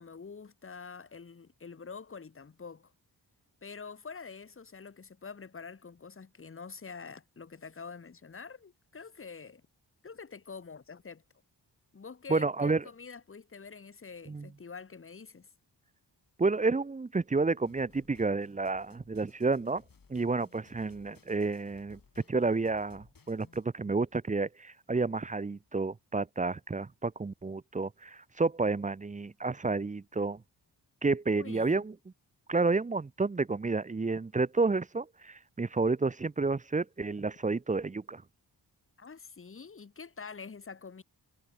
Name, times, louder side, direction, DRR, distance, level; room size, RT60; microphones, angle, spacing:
voice 1, 0.0-2.9 3.6-9.6 10.0-11.2 11.9-15.5 31.4-31.8 39.0-41.0, left 5 dB, 30° left, 1.2 m, -46 dB
voice 2, 12.3-12.8 14.3-14.5 16.4-19.8 20.1-22.0 22.3-30.4 31.0-31.9 32.5-38.2, right 3 dB, 20° right, 0.5 m, -30 dB
sound 1, 17.7-23.7, left 5 dB, 50° left, 4.1 m, -61 dB
cardioid pair, 70°, 43 cm